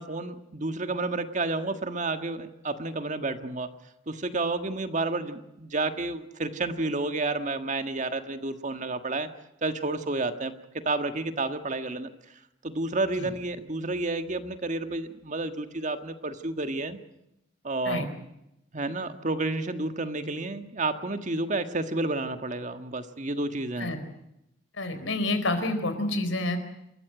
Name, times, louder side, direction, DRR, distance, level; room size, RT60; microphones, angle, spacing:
voice 1, 0.0-3.7 4.1-9.3 9.6-12.1 12.6-17.0 17.6-18.1 18.7-24.0, right 2 dB, 40° right, 8 dB, 1.6 m, -30 dB
voice 2, 24.8-26.6, left 2 dB, 75° left, 9 dB, 4.2 m, -28 dB
28.0 x 14.5 x 9.1 m, 0.85 s
head